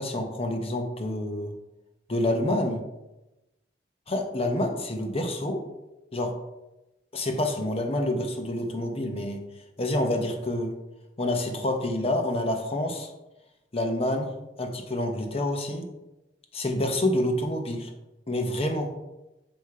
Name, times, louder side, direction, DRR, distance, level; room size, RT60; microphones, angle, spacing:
voice 1, 0.0-1.5 2.1-2.8 4.1-5.6 6.1-6.3 7.1-9.4 9.8-10.7 11.2-13.1 13.7-14.3 14.6-15.9 16.5-17.9 18.3-18.9, left 1 dB, 35° left, 4 dB, 0.9 m, -27 dB
8.4 x 3.0 x 4.8 m, 0.98 s
head